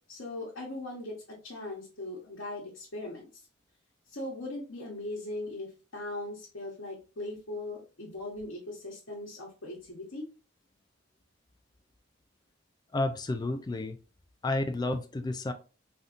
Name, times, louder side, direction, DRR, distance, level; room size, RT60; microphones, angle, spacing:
voice 1, 0.1-3.3 4.1-10.3, left 2 dB, 70° left, -5 dB, 1.1 m, -39 dB
voice 2, 12.9-14.0 14.4-15.5, left 2 dB, 20° left, 7 dB, 0.3 m, -31 dB
3.5 x 2.6 x 2.5 m, 0.33 s
head